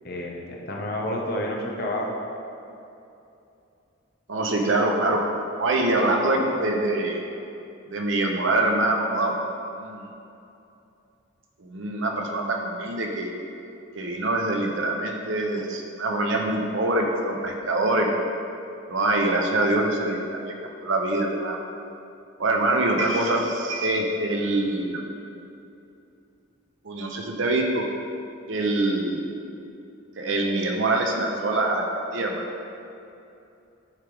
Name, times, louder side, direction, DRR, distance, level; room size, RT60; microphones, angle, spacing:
voice 1, 0.0-2.1, left 1 dB, 50° left, -1 dB, 0.9 m, -29 dB
voice 2, 4.3-5.2 5.6-7.2 7.9-9.4 9.8-10.1 11.6-13.3 13.9-18.1 18.9-21.6 22.4-25.0 26.8-27.8 28.5-29.4 30.2-31.8 32.1-32.5, right 2 dB, 70° right, 1 dB, 0.8 m, -24 dB
9.2 x 3.6 x 4.8 m, 2.7 s
head